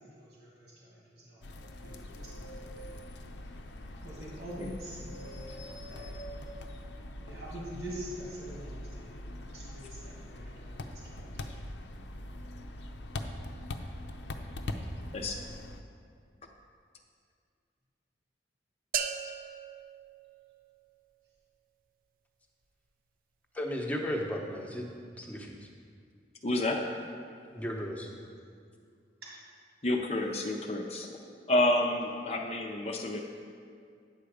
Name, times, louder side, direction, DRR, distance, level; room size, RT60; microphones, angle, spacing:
voice 1, 0.2-1.0 1.2-1.4 1.8-2.9 4.0-5.6 5.8-6.1 7.2-9.2 9.5-11.3, right 1 dB, 90° right, -5 dB, 2.2 m, -45 dB
sound 1, 1.4-15.8, left 1 dB, 80° left, 0.6 m, -42 dB
sound 2, 18.9-20.9, right 7 dB, 50° right, 0.5 m, -37 dB
voice 2, 23.5-24.9 25.2-25.5 27.5-28.1, equal, 10° left, 0 dB, 0.8 m, -34 dB
voice 3, 26.4-26.8 29.8-31.1 31.5-33.2, left 1 dB, 35° left, 2 dB, 0.5 m, -29 dB
9.3 x 6.9 x 4.9 m, 2.3 s
head